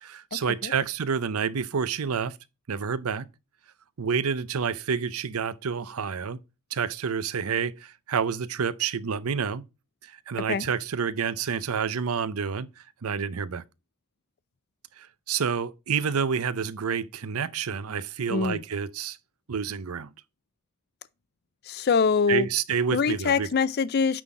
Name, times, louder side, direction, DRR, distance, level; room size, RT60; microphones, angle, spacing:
voice 1, 0.0-2.4 2.7-3.3 4.0-6.4 6.7-9.6 10.0-12.7 13.0-13.6 15.0-19.2 19.5-20.1 22.3-23.5, right 6 dB, 80° right, 0.6 m, -29 dB
voice 2, 18.3-18.6 21.7-22.5 22.9-24.2, left 5 dB, 45° left, 0.4 m, -24 dB
9.2 x 4.1 x 4.8 m
head